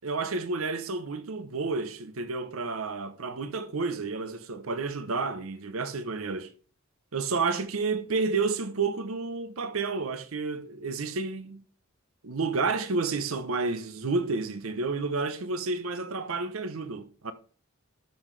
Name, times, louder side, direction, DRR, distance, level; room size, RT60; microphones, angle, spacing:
voice 1, 0.0-6.5 7.1-11.6 12.2-17.3, right 4 dB, 90° right, 0.7 m, -30 dB
12.5 x 5.6 x 3.2 m
head